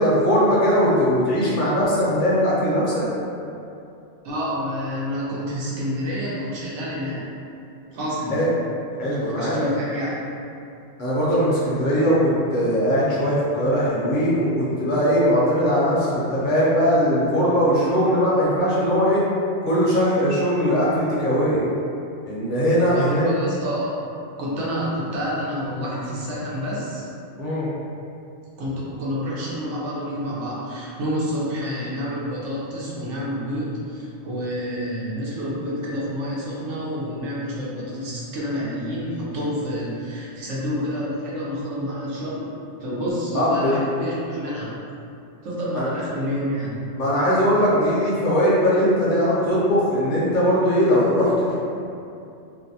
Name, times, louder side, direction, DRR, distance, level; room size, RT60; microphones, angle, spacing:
voice 1, 0.0-3.0 8.3-8.5 9.0-9.6 11.0-19.2 19.6-21.6 22.3-23.2 27.4-27.7 43.3-43.9 45.7-45.9 46.9-51.6, equal, 50° left, -7 dB, 0.7 m, -20 dB
voice 2, 4.2-7.2 7.9-8.4 9.4-10.1 22.7-24.1 24.4-27.0 28.6-42.5 42.8-44.7 45.4-46.8, equal, 80° right, -6 dB, 1.0 m, -28 dB
2.6 x 2.1 x 2.7 m, 2.6 s
omnidirectional pair, 1.2 m